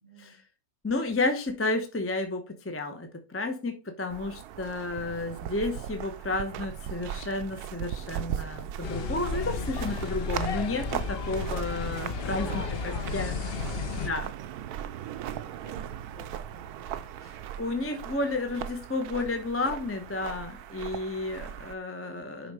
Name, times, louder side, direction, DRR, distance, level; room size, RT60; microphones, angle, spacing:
voice 1, 0.0-0.4 12.1-14.1 14.3-17.3, right 1 dB, 30° right, 2 dB, 2.1 m, -50 dB
voice 2, 0.8-12.5 12.8-13.3 14.0-14.3 17.2-22.5, left 2 dB, 10° left, 6 dB, 0.7 m, -32 dB
sound 1, 4.1-21.7, right 10 dB, 80° right, 1.1 m, -38 dB
sound 2, 8.8-14.1, left 5 dB, 50° left, 0.7 m, -33 dB
10.5 x 4.0 x 4.8 m, 0.35 s
omnidirectional pair, 1.7 m